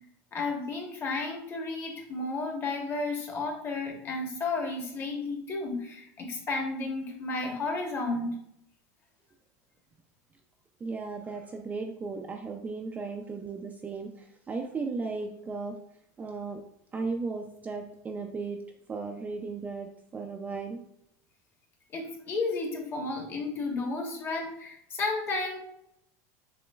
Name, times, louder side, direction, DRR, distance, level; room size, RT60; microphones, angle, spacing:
voice 1, 0.3-8.3 21.9-25.6, left 3 dB, 25° left, 2 dB, 1.0 m, -32 dB
voice 2, 10.8-15.8 16.2-16.6 16.9-18.6 18.9-20.8, right 4 dB, 15° right, 3 dB, 0.4 m, -36 dB
6.8 x 3.0 x 2.3 m, 0.74 s
supercardioid pair, 140°, 9 cm